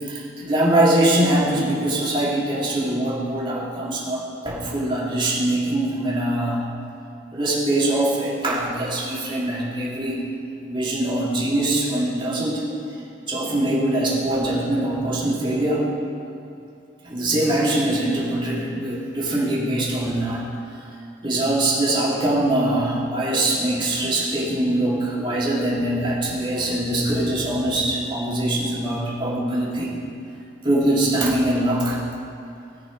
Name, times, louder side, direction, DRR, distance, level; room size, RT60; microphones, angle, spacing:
voice 1, 0.0-6.6 7.3-10.2 10.6-12.6 13.3-15.9 17.0-20.4 21.2-29.9 30.6-32.0, right 1 dB, 25° right, -6 dB, 2.3 m, -22 dB
18.0 x 6.2 x 5.2 m, 2.6 s
head